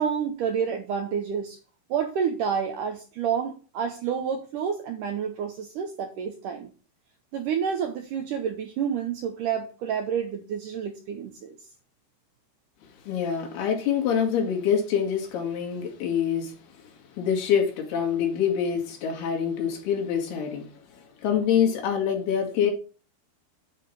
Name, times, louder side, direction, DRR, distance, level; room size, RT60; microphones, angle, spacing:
voice 1, 0.0-1.6 1.9-6.7 7.3-11.6, right 7 dB, 75° right, 1.9 m, -29 dB
voice 2, 13.0-16.6 17.2-22.7, left 8 dB, 75° left, 3.8 m, -25 dB
8.9 x 4.7 x 5.4 m
omnidirectional pair, 4.7 m